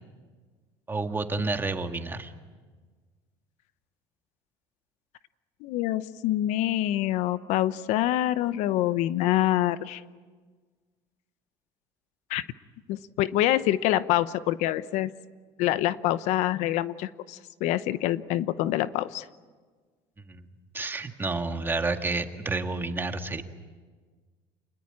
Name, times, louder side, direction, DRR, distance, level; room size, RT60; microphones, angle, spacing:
voice 1, 0.9-2.3 20.3-20.4 20.7-23.4, right 3 dB, 15° right, 6 dB, 1.9 m, -30 dB
voice 2, 5.6-10.0 12.3-12.4 12.9-15.1 15.6-19.3, left 14 dB, 75° left, 14 dB, 0.9 m, -26 dB
27.5 x 21.0 x 8.8 m, 1.5 s
cardioid pair, 115°, 12 cm